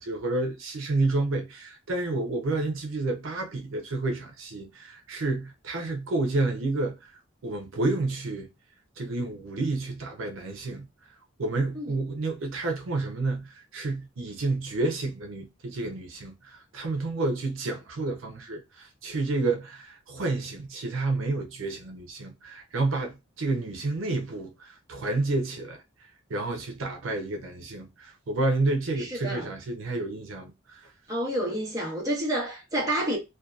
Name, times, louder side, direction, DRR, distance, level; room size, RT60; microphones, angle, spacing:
voice 1, 0.0-7.1 7.4-8.5 9.0-10.9 11.4-25.8 26.3-30.9, right 2 dB, 85° right, 0.6 m, -30 dB
voice 2, 29.0-29.5 31.1-33.2, right 1 dB, 20° right, 1.0 m, -29 dB
2.6 x 2.2 x 2.3 m
head